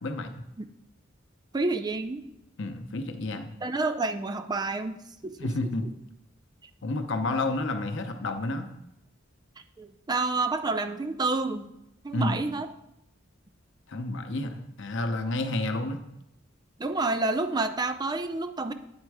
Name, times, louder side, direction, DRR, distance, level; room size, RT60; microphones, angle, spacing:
voice 1, 0.0-0.3 2.6-3.6 5.4-5.9 6.8-8.7 12.1-12.4 13.9-16.0, left 2 dB, 65° left, 7 dB, 0.7 m, -30 dB
voice 2, 1.5-2.3 3.6-5.4 9.8-11.7 12.0-12.7 16.8-18.7, right 3 dB, 20° right, 10 dB, 0.4 m, -29 dB
8.8 x 4.4 x 4.8 m, 0.85 s
head